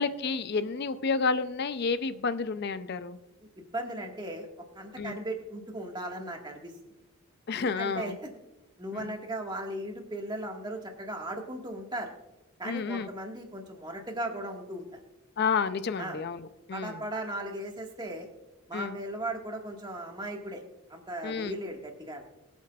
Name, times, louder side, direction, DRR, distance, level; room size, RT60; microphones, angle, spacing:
voice 1, 0.0-3.2 5.0-5.2 7.5-8.2 8.9-9.1 12.6-13.1 15.4-17.0 18.7-19.0 21.2-21.5, left 5 dB, 50° left, 13 dB, 0.5 m, -30 dB
voice 2, 3.6-4.5 4.7-6.7 7.5-8.1 8.8-12.1 12.6-15.0 16.0-16.2 16.7-18.3 18.7-20.6 20.9-22.2, right 1 dB, 20° right, 1 dB, 1.6 m, -37 dB
23.5 x 8.2 x 2.4 m, 1.0 s
head